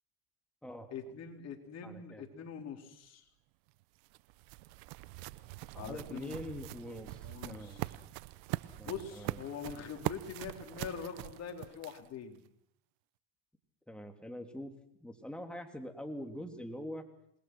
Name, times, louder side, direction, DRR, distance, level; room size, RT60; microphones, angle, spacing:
voice 1, 0.9-3.3 5.8-6.4 7.2-7.9 8.6-12.4, left 7 dB, 45° left, 4 dB, 3.9 m, -44 dB
voice 2, 1.8-2.2 5.7-7.8 8.8-9.4 13.9-14.7 15.0-17.0, equal, 5° left, 4 dB, 3.2 m, -44 dB
sound 1, 3.7-12.2, right 20 dB, 70° right, 0.9 m, -42 dB
27.5 x 20.5 x 6.2 m, 0.71 s
supercardioid pair, 105°, 36 cm